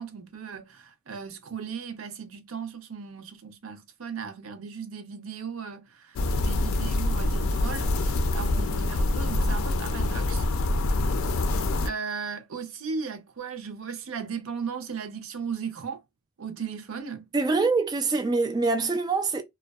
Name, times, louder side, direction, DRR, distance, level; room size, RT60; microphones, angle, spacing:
voice 1, 0.0-10.4 11.5-16.0 16.4-17.2, right 6 dB, 85° right, 0.5 m, -37 dB
sound 1, 6.2-11.9, left 2 dB, 80° left, 0.4 m, -25 dB
voice 2, 17.3-19.4, right 3 dB, 20° right, 0.3 m, -24 dB
2.6 x 2.2 x 2.2 m
head